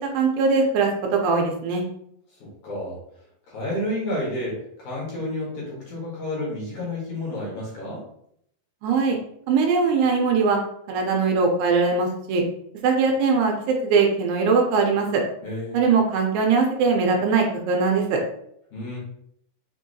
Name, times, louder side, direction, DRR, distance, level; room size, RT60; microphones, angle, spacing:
voice 1, 0.0-1.8 8.8-9.2 9.5-10.6 10.9-12.4 12.8-15.2 15.7-18.2, right 4 dB, 80° right, 2 dB, 2.4 m, -21 dB
voice 2, 2.4-3.0 3.5-8.0 15.4-15.9 18.7-19.0, left 1 dB, 60° left, -5 dB, 2.2 m, -30 dB
6.1 x 2.7 x 2.6 m, 0.71 s
omnidirectional pair, 4.4 m